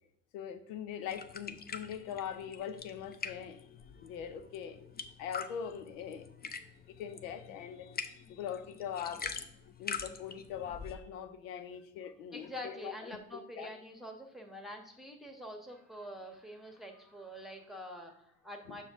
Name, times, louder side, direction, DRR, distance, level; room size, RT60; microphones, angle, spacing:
voice 1, 0.3-3.7 4.0-4.9 5.2-6.5 6.9-9.3 9.8-13.7 18.7-18.8, left 8 dB, 75° left, 0.8 m, -42 dB
sound 1, 1.1-11.0, left 5 dB, 25° left, 0.6 m, -45 dB
voice 2, 12.3-18.8, equal, ahead, 1.2 m, -46 dB
7.0 x 5.9 x 3.6 m
hypercardioid pair, 50°, 41 cm